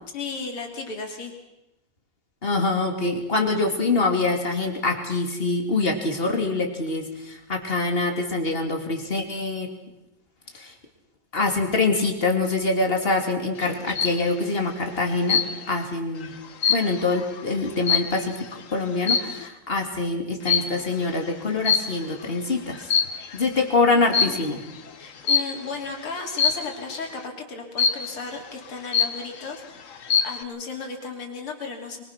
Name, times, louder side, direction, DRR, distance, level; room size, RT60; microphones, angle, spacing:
voice 1, 0.1-1.3 24.2-24.5 25.0-32.0, left 4 dB, 85° left, 2 dB, 3.9 m, -35 dB
voice 2, 2.4-9.7 10.5-10.7 11.3-16.4 16.7-22.9 23.3-24.6, left 3 dB, 25° left, 3 dB, 2.9 m, -25 dB
sound 1, 13.6-14.2 15.3-15.8 16.2-18.5 19.0-19.5 20.5-20.9 21.7-22.3 22.7-23.4 24.1-24.5 25.3-25.7 26.4-26.8 27.8-28.3 28.7-28.8 28.9-29.5 29.9-30.4, left 6 dB, 45° left, 1.1 m, -23 dB
24.0 x 22.5 x 5.9 m, 0.94 s
omnidirectional pair, 2.3 m